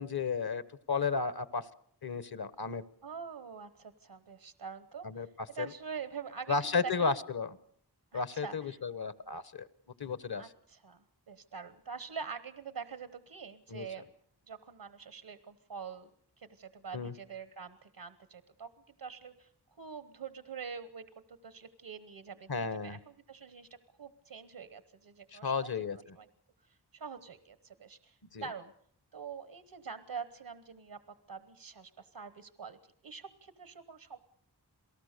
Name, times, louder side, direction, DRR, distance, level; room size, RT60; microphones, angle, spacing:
voice 1, 0.0-1.7 2.0-2.8 5.0-5.3 5.6-5.7 6.5-7.6 8.1-9.7 10.0-10.4 13.7-13.9 16.9-17.1 22.5-23.0 25.3-26.2 28.3-28.4, left 5 dB, 65° left, 15 dB, 1.2 m, -33 dB
voice 2, 3.0-7.1 8.1-8.8 10.4-14.1 14.5-16.1 16.4-26.3 26.6-28.7 29.1-31.0 31.3-34.2, right 6 dB, 85° right, 12 dB, 1.1 m, -45 dB
28.0 x 18.0 x 6.7 m, 0.63 s
wide cardioid pair, 40°, 40 cm